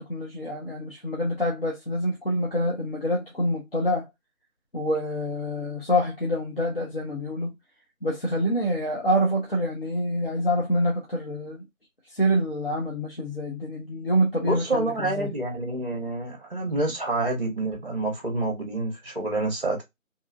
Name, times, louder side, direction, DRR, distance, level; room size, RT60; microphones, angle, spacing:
voice 1, 0.0-4.1 4.7-7.5 8.0-11.7 12.0-15.3, equal, 45° left, 0.7 m, -26 dB
voice 2, 14.4-19.8, right 2 dB, 45° right, 0.7 m, -28 dB
2.8 x 2.3 x 2.5 m
figure-of-eight pair, 170°, 42 cm